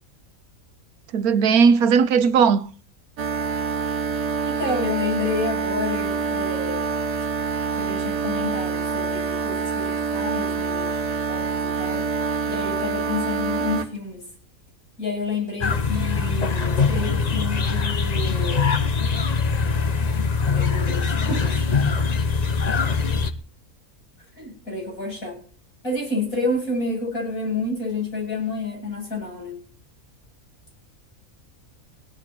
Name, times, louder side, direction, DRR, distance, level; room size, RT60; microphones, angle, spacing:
voice 1, 1.1-2.7, right 6 dB, 85° right, 1.4 m, -17 dB
sound 1, 3.2-13.9, right 5 dB, 70° right, 1.5 m, -26 dB
voice 2, 4.5-6.9 7.8-12.1 12.5-14.2 15.0-18.9 20.5-21.6 24.4-25.4 25.8-29.6, left 3 dB, 70° left, 8.7 m, -29 dB
sound 2, 15.6-23.3, left 5 dB, 35° left, 0.8 m, -22 dB
18.0 x 11.0 x 4.4 m
omnidirectional pair, 1.5 m